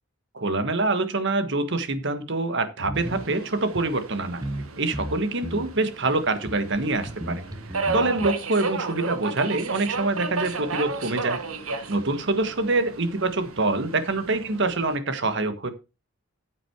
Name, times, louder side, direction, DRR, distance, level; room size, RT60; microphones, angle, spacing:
voice 1, 0.3-4.4 4.8-7.4 7.9-11.4 11.9-15.7, right 2 dB, 60° right, 10 dB, 1.4 m, -25 dB
sound 1, 2.8-3.3 3.7-3.9 4.4-4.7 4.9-5.7 6.5-6.6 7.1-8.3, right 1 dB, 15° right, 0.9 m, -34 dB
Subway metro underground, 3.0-15.0, right 4 dB, 90° right, 1.5 m, -34 dB
9.3 x 7.8 x 4.6 m, 0.28 s
head